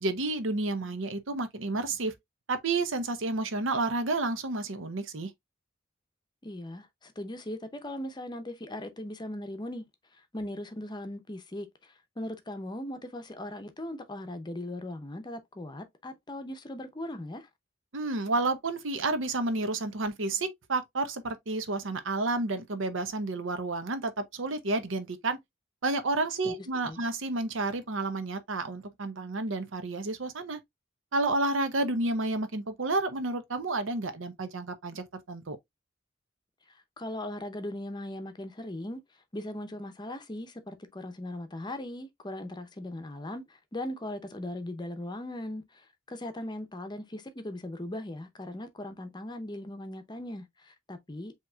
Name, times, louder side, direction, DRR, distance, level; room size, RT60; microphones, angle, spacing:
voice 1, 0.0-2.1 2.5-5.3 17.9-25.4 25.8-30.6 31.1-35.6, right 2 dB, 75° right, 0.8 m, -30 dB
voice 2, 6.4-9.9 10.3-17.5 26.4-26.5 26.8-27.0 37.0-39.0 39.3-51.3, left 1 dB, 20° left, 0.7 m, -39 dB
7.4 x 2.9 x 2.2 m
head